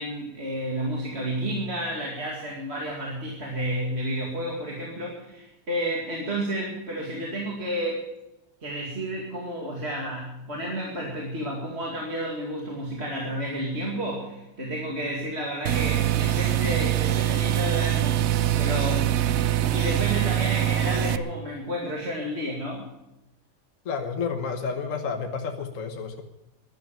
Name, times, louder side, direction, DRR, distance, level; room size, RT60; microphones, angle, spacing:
voice 1, 0.0-8.1 8.6-18.3 18.6-19.2 19.6-22.9, right 1 dB, 45° right, -2 dB, 2.6 m, -31 dB
sound 1, 15.7-21.2, right 12 dB, 60° right, 0.8 m, -23 dB
voice 2, 23.8-26.2, left 5 dB, 65° left, 5 dB, 1.5 m, -30 dB
12.0 x 11.0 x 9.1 m, 0.94 s
omnidirectional pair, 1.5 m